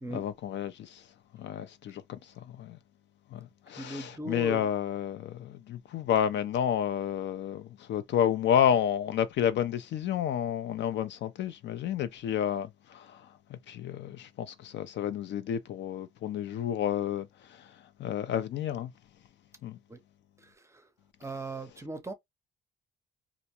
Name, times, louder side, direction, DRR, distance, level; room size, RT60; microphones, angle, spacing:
voice 1, 0.1-1.1 1.3-2.8 3.3-18.9 19.6-19.8, left 9 dB, 65° left, 0.4 m, -31 dB
voice 2, 3.8-4.7 19.9-20.0 20.4-20.9 21.2-22.1, right 2 dB, 15° right, 0.6 m, -39 dB
2.5 x 2.1 x 2.8 m
cardioid pair, 90°, 20 cm